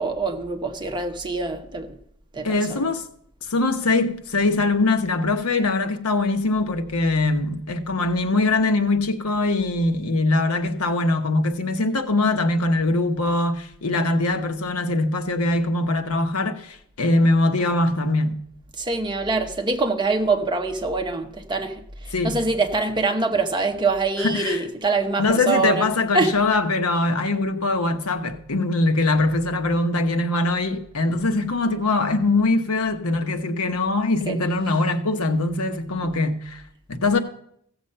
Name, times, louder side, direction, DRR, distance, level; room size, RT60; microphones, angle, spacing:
voice 1, 0.0-2.0 2.3-2.9 18.8-25.9 26.1-26.4 34.3-34.4 36.2-36.3, right 3 dB, 20° right, 0.9 m, -24 dB
voice 2, 2.4-3.0 3.5-18.4 22.1-22.4 24.2-24.6 25.2-36.6 36.9-37.2, left 2 dB, 85° left, 1.0 m, -22 dB
15.5 x 7.2 x 5.5 m
head